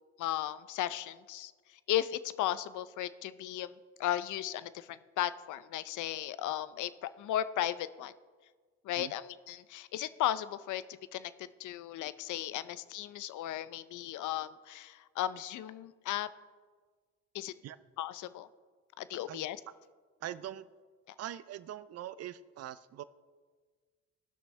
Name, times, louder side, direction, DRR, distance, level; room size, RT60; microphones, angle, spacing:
voice 1, 0.2-1.5 1.9-8.1 8.8-10.8 11.1-11.3 11.6-16.3 17.3-17.5 18.0-18.5 19.0-19.6, left 12 dB, 80° left, 15 dB, 0.6 m, -35 dB
voice 2, 20.2-20.7 21.2-23.0, right 11 dB, 55° right, 16 dB, 0.5 m, -42 dB
17.5 x 6.2 x 3.2 m, 1.5 s
cardioid pair, 90°, 30 cm